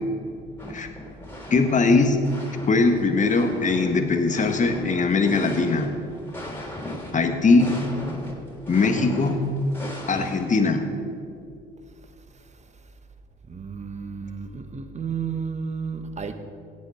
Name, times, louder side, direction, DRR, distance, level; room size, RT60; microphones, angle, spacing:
sound 1, 0.6-1.9 2.2-10.5, left 1 dB, 10° left, 3.4 m, -37 dB
voice 1, 1.5-2.3 2.7-5.9 7.1-7.9 8.7-9.5 10.1-10.9, left 3 dB, 35° left, 6 dB, 1.5 m, -21 dB
voice 2, 13.5-16.3, right 6 dB, 35° right, 9 dB, 1.2 m, -32 dB
17.0 x 8.3 x 4.4 m, 2.4 s
hypercardioid pair, 60°, 21 cm